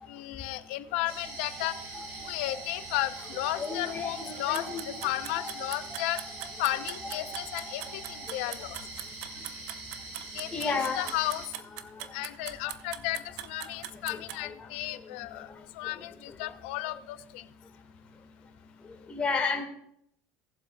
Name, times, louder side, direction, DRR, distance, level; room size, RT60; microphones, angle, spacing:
voice 1, 0.1-1.8 2.2-6.2 6.6-8.8 10.3-11.4 12.1-15.5 15.7-17.4, left 16 dB, 80° left, 12 dB, 0.7 m, -34 dB
sound 1, 1.1-11.5, right 2 dB, 45° right, 4.3 m, -43 dB
sound 2, 1.2-8.3, right 2 dB, 25° right, 2.5 m, -47 dB
voice 2, 3.6-4.8 5.3-5.5 7.0-7.3 10.5-11.2 11.7-12.0 14.1-14.5 15.4-15.5 16.9-17.0 19.1-19.6, left 4 dB, 20° left, -3 dB, 1.8 m, -33 dB
sound 3, 4.3-14.4, right 13 dB, 70° right, 0.6 m, -41 dB
19.0 x 7.3 x 2.3 m, 0.73 s
supercardioid pair, 115°, 6 cm